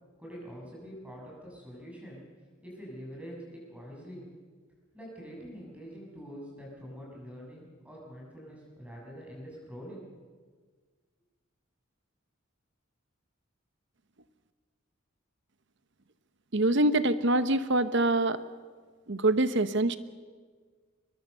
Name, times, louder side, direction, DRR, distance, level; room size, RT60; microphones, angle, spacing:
voice 1, 0.2-2.3 2.6-4.2 4.9-10.0, equal, 5° right, -3 dB, 6.7 m, -45 dB
voice 2, 16.5-18.4 19.1-20.0, right 2 dB, 55° right, 13 dB, 1.0 m, -25 dB
23.0 x 21.5 x 6.7 m, 1.5 s
head